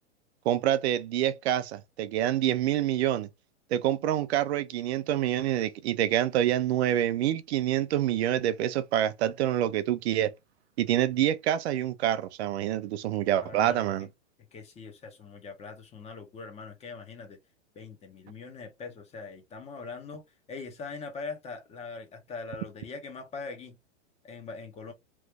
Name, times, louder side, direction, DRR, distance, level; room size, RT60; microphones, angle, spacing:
voice 1, 0.5-3.3 3.7-10.3 10.8-14.1, right 12 dB, 65° right, 0.5 m, -27 dB
voice 2, 13.4-14.1 14.5-17.4 17.7-20.2 20.5-23.8 24.2-24.9, left 4 dB, 20° left, 0.9 m, -42 dB
3.0 x 2.4 x 3.5 m
hypercardioid pair, 135°, 35 cm